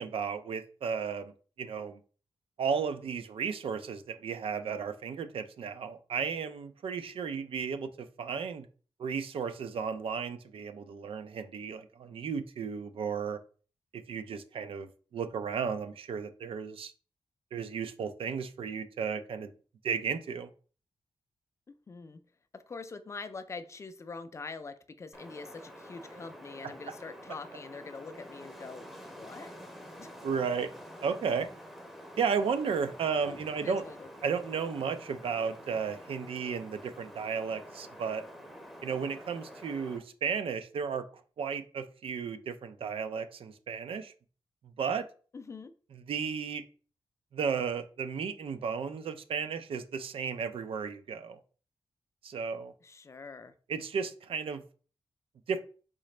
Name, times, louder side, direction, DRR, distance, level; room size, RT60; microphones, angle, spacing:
voice 1, 0.0-1.3 1.6-2.0 2.6-7.9 8.2-8.7 9.0-13.4 13.9-16.9 17.5-19.5 19.8-20.5 30.2-30.7 31.0-31.5 32.2-33.8 34.2-38.2 38.8-41.1 41.4-44.1 44.8-45.1 45.9-46.6 47.3-51.4 52.2-52.7 53.7-54.6 55.5-55.6, right 6 dB, 75° right, 10 dB, 0.4 m, -34 dB
voice 2, 21.7-22.2 22.5-28.8 29.2-29.5 30.0-30.1 33.2-34.1 45.3-45.7 52.8-53.5, left 4 dB, 30° left, 10 dB, 0.4 m, -44 dB
Wind, 25.1-40.0, equal, 5° right, 0.6 m, -48 dB
4.1 x 3.8 x 3.2 m, 0.40 s
wide cardioid pair, 175°, 10 cm